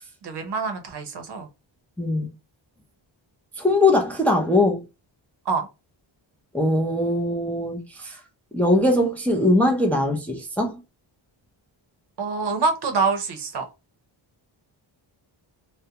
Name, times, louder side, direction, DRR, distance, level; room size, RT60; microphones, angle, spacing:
voice 1, 0.2-1.5 5.5-5.7 12.2-13.6, right 4 dB, 60° right, 0.7 m, -25 dB
voice 2, 2.0-2.3 3.6-4.8 6.5-8.2 8.5-10.7, left 2 dB, 5° left, 0.4 m, -21 dB
2.4 x 2.1 x 2.7 m
wide cardioid pair, 125°, 47 cm